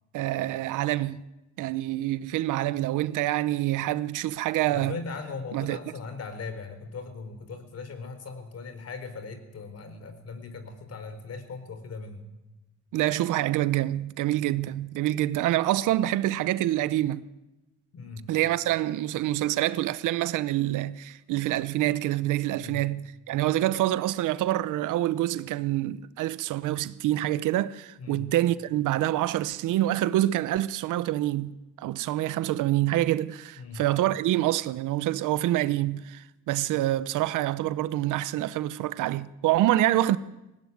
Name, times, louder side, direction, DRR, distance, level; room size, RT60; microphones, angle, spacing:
voice 1, 0.1-1.2 1.6-5.0 5.5-5.8 12.9-17.3 18.3-40.2, right 14 dB, 90° right, 0.8 m, -26 dB
voice 2, 4.7-12.3 17.9-18.3 22.5-22.8 28.0-28.3 33.5-33.8, left 4 dB, 55° left, 4.3 m, -39 dB
19.0 x 18.0 x 9.4 m
cardioid pair, 90°, 30 cm